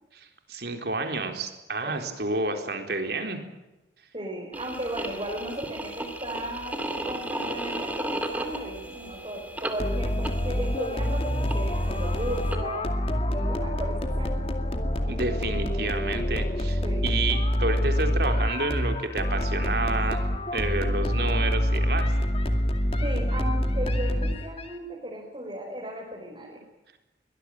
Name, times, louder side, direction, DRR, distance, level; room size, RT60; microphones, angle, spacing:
voice 1, 0.1-3.4 15.0-22.1, right 2 dB, 65° right, 5 dB, 4.0 m, -30 dB
voice 2, 4.1-6.8 7.0-12.8 13.3-14.4 16.8-17.2 23.0-26.5, right 1 dB, 30° right, -2 dB, 5.2 m, -36 dB
sound 1, 4.5-12.6, right 1 dB, 10° right, 2.5 m, -35 dB
sound 2, 9.8-24.7, equal, 35° left, 2.4 m, -26 dB
23.5 x 20.0 x 9.1 m, 1.0 s
head